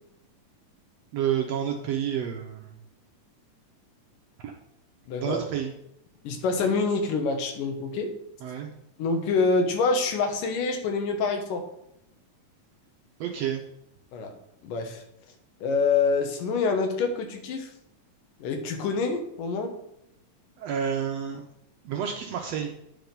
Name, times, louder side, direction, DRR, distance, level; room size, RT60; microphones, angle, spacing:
voice 1, 1.1-2.8 4.4-4.5 5.2-5.7 8.4-8.7 13.2-13.6 20.6-21.5 21.8-22.7, right 9 dB, 75° right, 3 dB, 1.6 m, -29 dB
voice 2, 5.1-5.4 6.2-8.1 9.0-11.6 14.1-14.3 14.6-15.0 15.6-17.7 18.4-19.7, left 4 dB, 90° left, 4 dB, 2.8 m, -26 dB
9.9 x 4.7 x 5.3 m, 0.79 s
omnidirectional pair, 3.6 m